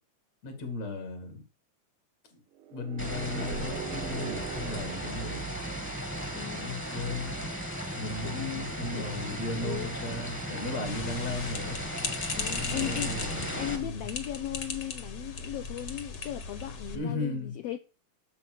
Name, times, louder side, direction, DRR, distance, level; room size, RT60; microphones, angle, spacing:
voice 1, 0.4-1.4 2.7-5.5 6.5-7.5 7.9-11.8 12.5-14.1 16.9-17.5, left 2 dB, 60° left, 3.3 m, -36 dB
sound 1, 2.6-6.4, right 10 dB, 75° right, 1.2 m, -42 dB
sound 2, 3.0-13.8, right 1 dB, 5° left, 0.9 m, -36 dB
voice 2, 6.3-6.9 8.0-10.0 12.3-13.2 13.5-17.8, left 13 dB, 80° left, 1.4 m, -38 dB
sound 3, 10.9-17.0, left 4 dB, 45° left, 1.7 m, -37 dB
8.5 x 7.0 x 6.4 m
omnidirectional pair, 3.5 m